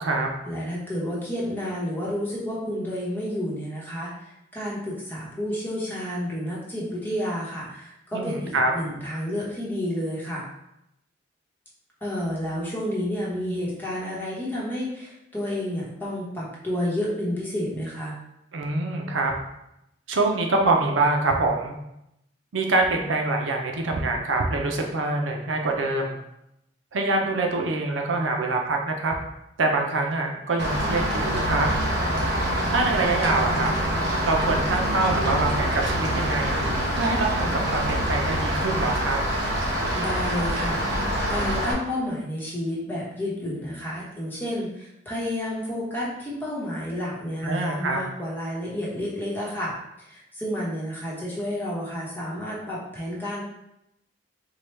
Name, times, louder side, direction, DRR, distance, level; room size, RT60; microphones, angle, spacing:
voice 1, 0.5-10.4 12.0-18.2 39.9-49.7 50.0-53.4, equal, 10° left, -6 dB, 0.9 m, -30 dB
voice 2, 8.1-8.7 18.5-19.3 20.1-21.8 22.5-26.2 26.9-29.1 29.6-31.7 32.7-33.7 34.2-36.6 36.9-39.2 47.4-48.0, right 2 dB, 80° right, 2 dB, 0.6 m, -25 dB
Rain, 30.6-41.7, equal, 60° right, 1.0 m, -25 dB
4.5 x 2.2 x 3.2 m, 0.83 s
head